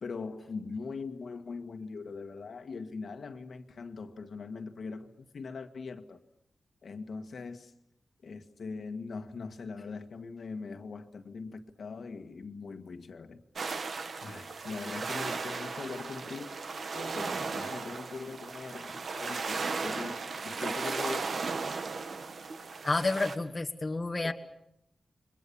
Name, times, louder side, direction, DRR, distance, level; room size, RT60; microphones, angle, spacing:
voice 1, 0.0-6.2 6.8-7.7 8.2-13.4 14.2-16.5 16.9-20.2 20.4-21.3 24.2-24.3, left 4 dB, 65° left, 7 dB, 1.8 m, -41 dB
sound 1, 13.6-23.4, right 4 dB, 60° right, 1.7 m, -36 dB
voice 2, 22.8-24.3, left 2 dB, 25° left, 5 dB, 1.5 m, -30 dB
29.5 x 24.0 x 7.1 m, 0.77 s
wide cardioid pair, 135°, 0 cm